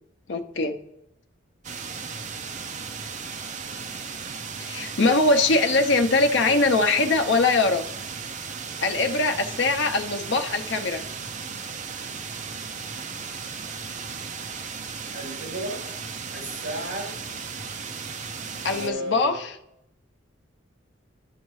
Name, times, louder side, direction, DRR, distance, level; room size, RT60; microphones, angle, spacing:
voice 1, 0.3-0.8 4.6-7.9 8.8-11.0 18.6-19.5, left 3 dB, 60° left, 6 dB, 0.7 m, -22 dB
sound 1, 1.6-18.9, right 5 dB, 35° right, 0.5 m, -36 dB
voice 2, 15.1-15.9 16.3-17.2 18.6-19.4, equal, 65° right, -4 dB, 3.1 m, -34 dB
11.0 x 6.4 x 3.1 m, 0.81 s
head